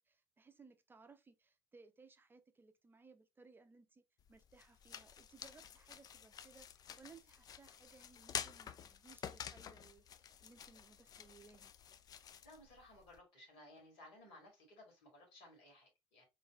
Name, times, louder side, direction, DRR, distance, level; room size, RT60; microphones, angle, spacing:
voice 1, 0.0-4.0 4.3-11.7, right 4 dB, 15° right, 0.7 m, -63 dB
sound 1, 4.2-13.2, left 8 dB, 30° left, 0.4 m, -50 dB
voice 2, 12.4-16.2, left 1 dB, 55° left, 2.4 m, -59 dB
3.9 x 3.3 x 3.0 m
figure-of-eight pair, 60°, 12 cm